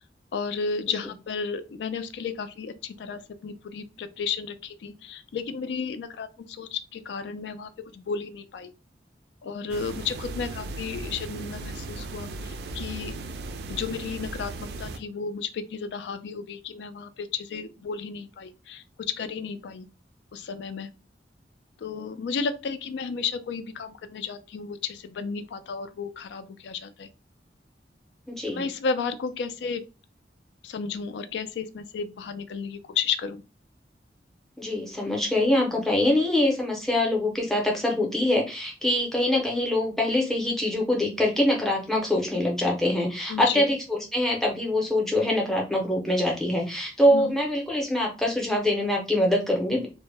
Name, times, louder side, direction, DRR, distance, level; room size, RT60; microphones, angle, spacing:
voice 1, 0.3-8.7 9.4-13.2 13.7-19.9 20.3-20.9 21.8-27.1 28.5-29.8 30.6-33.4 43.3-43.7 47.1-47.3, left 5 dB, 75° left, 10 dB, 0.3 m, -33 dB
sound 1, 9.7-15.0, right 2 dB, 65° right, 0.3 m, -37 dB
voice 2, 28.3-28.6 34.6-49.9, left 1 dB, ahead, -1 dB, 0.5 m, -24 dB
2.1 x 2.0 x 3.3 m, 0.30 s
head